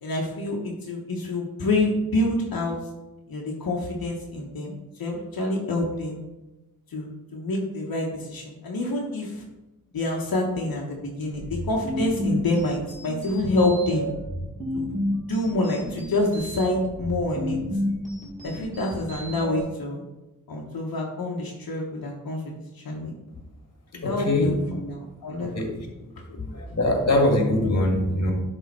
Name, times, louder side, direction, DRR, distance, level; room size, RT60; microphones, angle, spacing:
voice 1, 0.0-2.8 3.3-4.7 5.0-6.2 6.9-9.4 9.9-14.1 14.7-14.9 15.3-17.6 18.4-20.0 20.5-23.1 23.9-25.6 26.3-26.4 27.8-27.9, left 2 dB, 80° left, -1 dB, 1.1 m, -27 dB
sound 1, 11.3-19.6, equal, 20° right, 1.9 m, -31 dB
voice 2, 24.0-24.6 25.5-25.7 26.4-28.3, left 1 dB, 50° left, 2 dB, 1.7 m, -22 dB
10.5 x 3.7 x 4.2 m, 1.0 s
wide cardioid pair, 85°, 35 cm